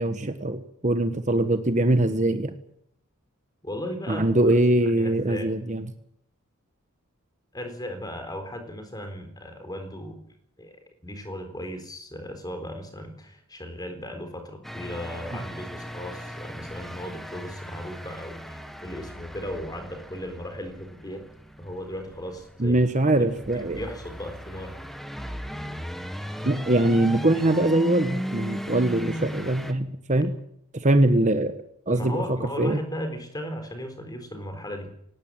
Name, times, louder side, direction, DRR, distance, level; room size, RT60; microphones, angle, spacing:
voice 1, 0.0-2.5 4.1-5.9 22.6-23.8 26.4-30.3 30.7-31.5 31.9-32.2 32.6-32.8, right 1 dB, 35° right, 9 dB, 1.2 m, -22 dB
voice 2, 3.6-4.5 4.8-5.5 7.5-10.2 10.6-10.7 11.0-21.3 21.6-22.8 23.2-24.8 31.9-34.9, equal, 20° left, 7 dB, 3.9 m, -36 dB
sound 1, 14.6-29.7, equal, ahead, 1.5 m, -37 dB
18.5 x 18.0 x 8.8 m, 0.72 s
head